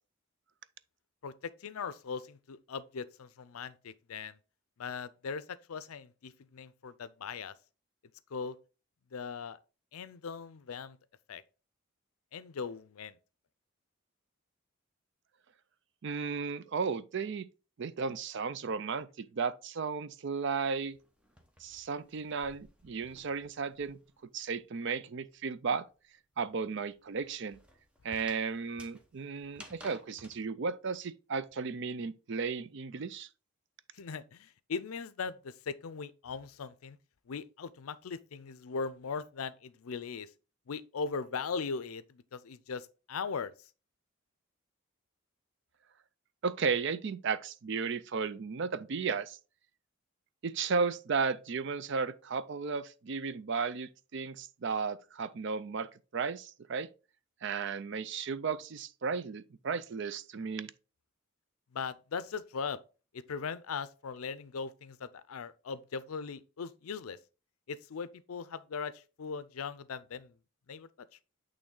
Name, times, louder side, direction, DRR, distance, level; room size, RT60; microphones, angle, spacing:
voice 1, 1.2-4.4 4.8-7.5 8.3-8.6 9.1-9.6 9.9-11.0 11.3-11.4 12.3-13.2 33.9-37.0 37.3-40.3 40.7-43.5 61.7-62.8 63.1-67.2 67.7-70.3 70.7-70.9, left 5 dB, 80° left, 0.5 m, -39 dB
voice 2, 16.0-17.5 17.8-21.0 21.6-24.0 24.3-25.9 26.4-27.6 28.0-33.3 46.4-49.4 50.4-56.9 57.4-60.7, right 5 dB, 55° right, 0.4 m, -34 dB
sound 1, 20.5-24.3 24.5-30.4, equal, 5° right, 0.8 m, -56 dB
8.6 x 3.2 x 3.8 m
head